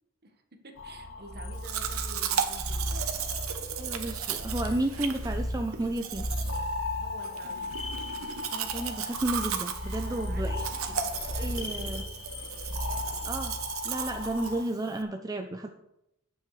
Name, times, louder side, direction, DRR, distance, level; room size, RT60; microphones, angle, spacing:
voice 1, 0.2-3.1 7.0-7.9 10.0-12.1, right 2 dB, 50° right, 4 dB, 1.4 m, -49 dB
sound 1, 0.8-14.6, left 1 dB, 65° left, 2.0 m, -36 dB
Domestic sounds home sounds, 1.6-15.0, right 7 dB, 75° right, 1.0 m, -35 dB
voice 2, 3.8-6.3 8.5-10.7 11.3-12.0 13.2-13.6 13.8-15.7, right 1 dB, 15° right, 5 dB, 0.5 m, -32 dB
18.0 x 6.4 x 3.3 m, 0.85 s
head